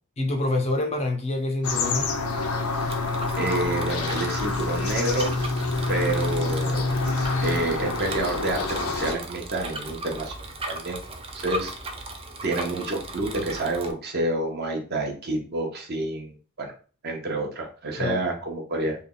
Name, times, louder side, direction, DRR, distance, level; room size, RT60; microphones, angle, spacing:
voice 1, 0.2-2.1 18.0-18.2, left 2 dB, 30° left, 0.5 m, -26 dB
sound 1, 1.6-9.1, left 3 dB, 75° left, 0.6 m, -27 dB
Bicycle, 2.2-13.9, right 2 dB, 25° right, 0.4 m, -37 dB
voice 2, 3.4-5.3 5.9-6.9 7.4-10.4 10.7-11.0 11.3-11.7 12.4-16.7 17.0-19.0, right 2 dB, 45° right, 0.9 m, -28 dB
3.4 x 2.3 x 3.7 m
head